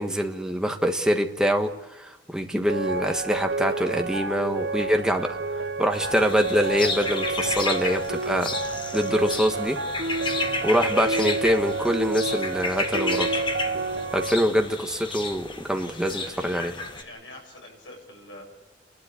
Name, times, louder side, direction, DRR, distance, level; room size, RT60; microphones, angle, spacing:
voice 1, 0.0-1.7 2.0-5.3 5.8-8.5 8.9-9.8 10.6-13.4 14.1-16.7, equal, 5° right, 3 dB, 1.4 m, -24 dB
sound 1, 2.7-14.4, right 3 dB, 65° right, 0.9 m, -29 dB
sound 2, 5.9-17.0, left 3 dB, 25° left, 1.3 m, -32 dB
voice 2, 15.9-18.4, left 2 dB, 85° left, 0 dB, 7.9 m, -45 dB
30.0 x 12.0 x 8.5 m, 1.0 s
head